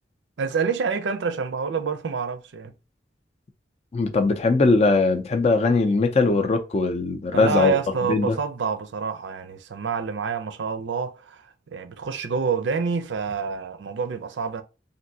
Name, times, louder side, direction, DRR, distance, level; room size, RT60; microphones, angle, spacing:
voice 1, 0.4-2.7 7.3-11.4 11.7-14.6, right 5 dB, 90° right, 0.5 m, -27 dB
voice 2, 3.9-7.7 8.1-8.4, left 3 dB, 35° left, 0.4 m, -20 dB
3.3 x 2.6 x 2.6 m
head